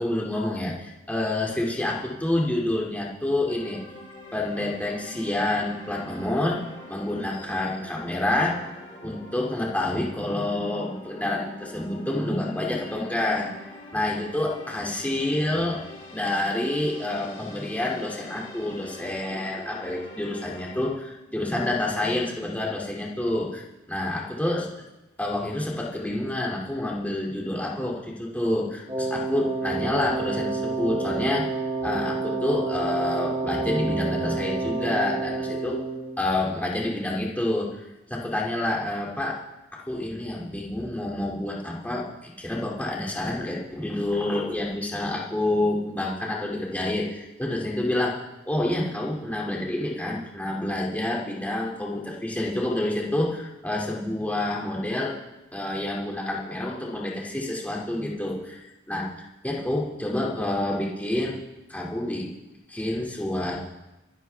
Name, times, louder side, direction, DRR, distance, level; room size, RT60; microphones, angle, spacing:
voice 1, 0.0-3.8 4.3-8.6 9.0-13.5 13.9-15.8 16.1-24.7 25.2-31.5 31.8-35.8 36.2-37.8 38.1-39.4 39.7-55.2 55.5-59.1 59.4-61.4 61.7-62.3 62.7-63.6, left 1 dB, 10° left, -3 dB, 2.5 m, -28 dB
sound 1, 3.5-20.8, left 1 dB, 25° left, 5.7 m, -45 dB
Wind instrument woodwind instrument, 28.9-36.2, right 3 dB, 20° right, 3.1 m, -29 dB
25.5 x 11.0 x 3.5 m, 1.0 s
head